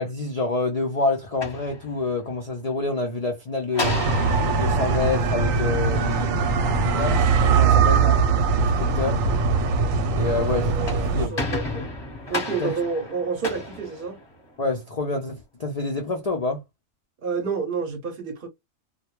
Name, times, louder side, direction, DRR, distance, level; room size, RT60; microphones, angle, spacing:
voice 1, 0.0-4.0 4.5-8.2 8.6-9.2 10.1-10.7 11.1-11.4 12.6-12.7 14.6-16.6, left 3 dB, 65° left, 0.3 m, -27 dB
sound 1, 1.2-2.4 3.7-6.2 10.6-14.7, left 2 dB, 20° left, 0.9 m, -33 dB
sound 2, 3.8-11.3, right 5 dB, 85° right, 1.0 m, -21 dB
voice 2, 10.3-11.9 12.3-14.2 17.2-18.5, right 5 dB, 50° right, 0.7 m, -29 dB
2.2 x 2.2 x 2.9 m
omnidirectional pair, 1.3 m